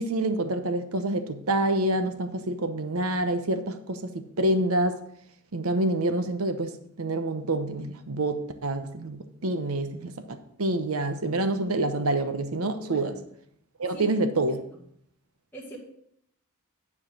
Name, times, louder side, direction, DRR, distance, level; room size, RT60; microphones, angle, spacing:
voice 1, 0.0-5.0 5.5-6.7 7.0-13.1 13.8-14.6, right 2 dB, 85° right, 0.9 m, -27 dB
voice 2, 12.8-13.2 13.9-14.6 15.5-15.8, right 2 dB, 10° left, 1.7 m, -42 dB
9.9 x 4.8 x 6.4 m
head